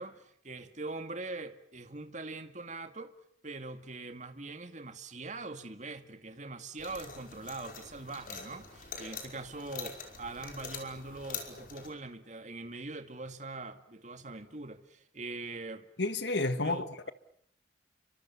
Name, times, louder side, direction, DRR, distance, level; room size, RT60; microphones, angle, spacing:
voice 1, 0.0-3.1 3.4-15.9 16.6-17.1, right 3 dB, 40° right, 2.2 m, -42 dB
sound 1, 6.8-11.9, left 5 dB, 50° left, 5.3 m, -44 dB
voice 2, 16.0-17.1, left 2 dB, 75° left, 1.8 m, -31 dB
30.0 x 25.5 x 7.2 m
head